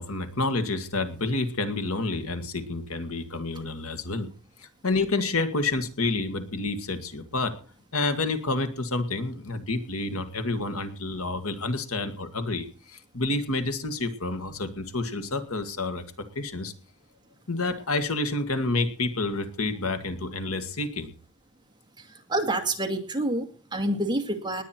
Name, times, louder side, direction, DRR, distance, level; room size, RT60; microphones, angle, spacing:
voice 1, 0.0-4.3 4.6-7.5 7.9-16.0 16.4-16.7 17.5-21.1, left 2 dB, 70° left, 8 dB, 2.0 m, -29 dB
voice 2, 22.3-24.6, right 1 dB, 20° right, 5 dB, 2.1 m, -27 dB
19.5 x 9.7 x 4.5 m, 0.39 s
head